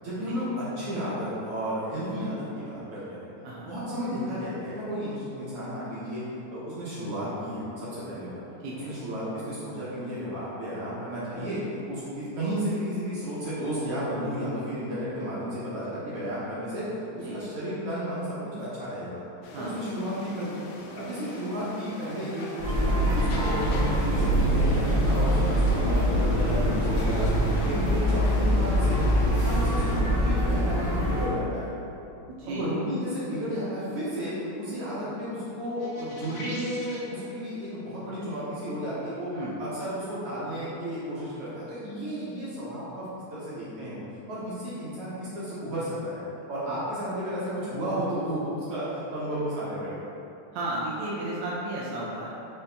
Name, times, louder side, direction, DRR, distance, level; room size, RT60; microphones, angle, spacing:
voice 1, 0.0-3.3 3.6-6.2 6.5-8.4 8.8-16.9 17.2-19.2 19.6-20.5 20.9-27.3 27.6-29.0 29.3-31.7 32.5-39.3 39.6-44.0 44.3-46.2 46.5-50.0, equal, 65° right, -10 dB, 1.5 m, -33 dB
voice 2, 8.6-9.0 17.2-17.4 19.5-19.7 26.3-26.5 32.2-32.7 39.3-39.5 46.6-46.8 50.5-52.3, right 1 dB, 90° right, -5 dB, 1.5 m, -34 dB
sound 1, 19.4-30.0, left 2 dB, 80° left, 1.7 m, -39 dB
sound 2, 22.6-31.3, equal, 40° left, 0.9 m, -24 dB
sound 3, 35.8-37.1, equal, 60° left, 2.5 m, -40 dB
5.3 x 2.8 x 3.3 m, 2.8 s
omnidirectional pair, 3.7 m